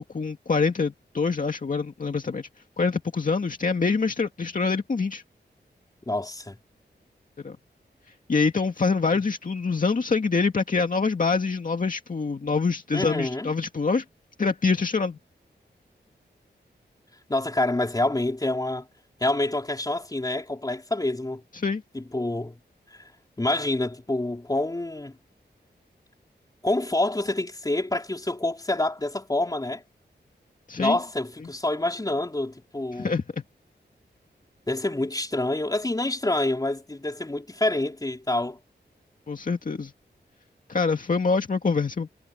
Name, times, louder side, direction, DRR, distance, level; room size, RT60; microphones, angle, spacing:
voice 1, 0.0-2.5 2.8-5.2 7.4-7.6 8.3-14.0 14.4-15.2 21.5-21.8 30.7-31.0 32.9-33.2 39.3-39.9 40.7-42.1, left 4 dB, 50° left, 2.1 m, -25 dB
voice 2, 6.1-6.6 12.9-13.5 17.3-18.9 19.2-21.4 21.9-22.6 22.9-23.0 23.4-25.2 26.6-29.8 30.8-33.1 34.7-38.6, left 2 dB, 20° left, 4.3 m, -27 dB
wide cardioid pair, 110°, 18 cm